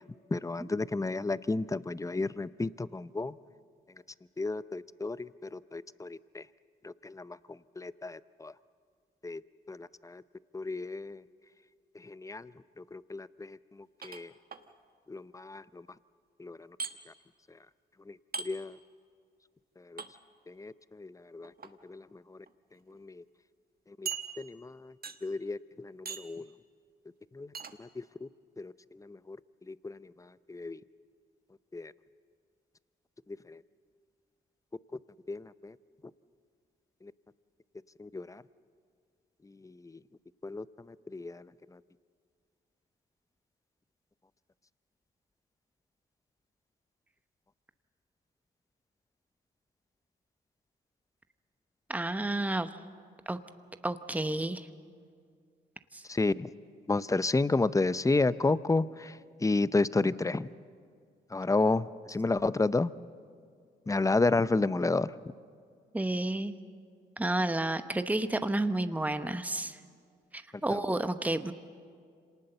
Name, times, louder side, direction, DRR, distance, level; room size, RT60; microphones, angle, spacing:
voice 1, 0.3-3.4 4.4-6.4 6.8-8.5 9.2-9.4 9.7-10.2 10.5-11.2 11.9-14.3 15.1-15.9 16.4-16.8 17.1-17.2 18.1-18.8 19.8-20.0 20.5-21.5 21.8-22.4 22.9-23.2 24.0-24.1 24.4-24.9 25.2-26.5 27.3-27.5 27.8-28.3 28.6-29.4 29.7-30.8 31.7-31.9 33.3-33.6 35.3-35.8 37.0-37.1 38.0-38.4 39.4-40.0 40.4-41.8 56.1-56.5 56.9-60.5 61.3-62.9 63.9-65.1 70.7-70.8, left 3 dB, 15° left, 17 dB, 0.6 m, -32 dB
sound 1, 14.0-14.6 16.8-16.9 18.3-18.5 20.0-20.1 21.4-21.7 22.5-22.6 22.9-23.0 24.1-24.7 25.0-25.4 26.1-26.4 27.5-27.7, right 5 dB, 45° right, 1.3 m, -39 dB
voice 2, 51.9-52.8 53.3-53.4 53.8-54.7 55.9-56.0 65.9-66.5 67.2-69.8 70.3-71.5, right 1 dB, 5° right, 10 dB, 1.0 m, -31 dB
26.0 x 19.0 x 6.8 m, 2.1 s
supercardioid pair, 55°, 21 cm